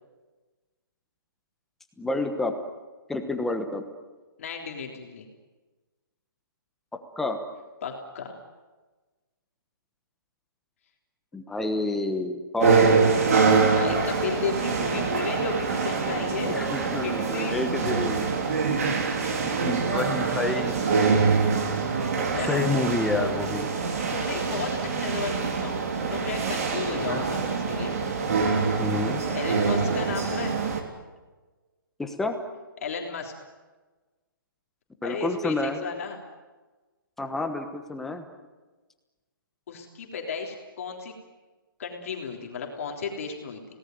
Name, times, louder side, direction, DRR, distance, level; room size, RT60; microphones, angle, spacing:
voice 1, 2.0-2.6 3.1-3.8 6.9-7.4 11.3-13.2 16.5-18.2 19.5-20.8 22.5-23.7 27.1-27.2 28.8-29.2 32.0-32.4 35.0-35.8 37.2-38.2, left 2 dB, 5° left, 6 dB, 1.1 m, -29 dB
voice 2, 4.4-5.3 7.8-8.4 13.7-16.7 17.0-17.6 22.3-22.6 24.1-25.8 26.1-27.9 29.3-30.5 32.8-33.3 35.0-36.2 39.7-41.1 41.8-43.6, left 5 dB, 40° left, 1 dB, 3.5 m, -33 dB
sound 1, 12.6-30.8, right 5 dB, 45° right, 3.5 m, -25 dB
29.0 x 18.5 x 9.3 m, 1.3 s
hypercardioid pair, 170°, 12 cm